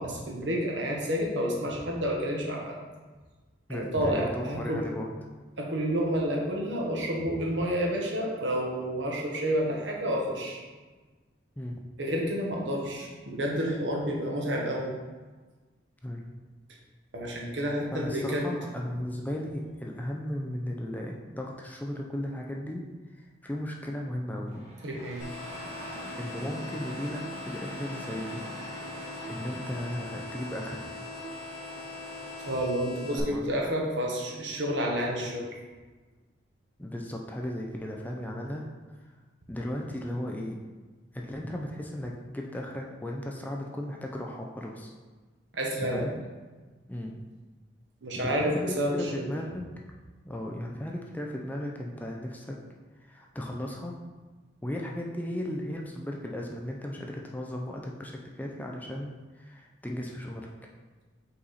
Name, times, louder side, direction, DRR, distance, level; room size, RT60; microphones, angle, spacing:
voice 1, 0.0-2.7 3.7-4.8 5.6-10.6 12.0-14.9 17.1-18.4 24.8-25.3 32.5-35.5 45.5-46.0 48.0-49.3, equal, 75° right, -1 dB, 1.2 m, -29 dB
voice 2, 3.7-5.1 11.6-11.8 16.0-16.3 17.9-22.8 23.2-24.6 26.2-29.0 29.3-30.8 33.1-33.6 36.8-38.7 39.0-39.1 39.5-40.6 41.1-44.9 45.8-46.2 46.9-47.2 48.2-49.7 50.2-52.6 53.0-53.9 54.6-60.5, left 1 dB, 10° left, -1 dB, 0.5 m, -36 dB
Engine starting, 24.5-32.6, equal, 35° right, 1.2 m, -43 dB
sound 1, 25.2-33.2, left 3 dB, 75° left, 1.4 m, -42 dB
5.7 x 4.1 x 4.1 m, 1.3 s
head